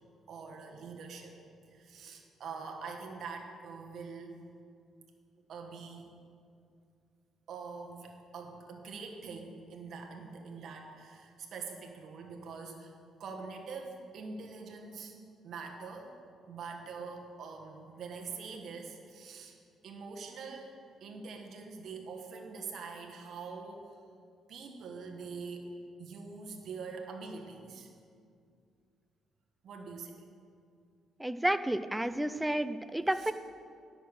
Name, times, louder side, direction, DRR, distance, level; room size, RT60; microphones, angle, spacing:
voice 1, 0.3-1.4 1.7-4.4 5.5-6.1 7.5-12.9 13.2-15.2 15.4-16.1 16.5-19.6 19.8-23.9 24.5-25.7 26.0-27.9 29.6-30.2 33.1-33.3, right 4 dB, 65° right, 2 dB, 1.3 m, -44 dB
voice 2, 31.2-33.3, right 1 dB, 10° right, 12 dB, 0.4 m, -31 dB
10.5 x 6.6 x 6.6 m, 2.4 s
cardioid pair, 90°, 0 cm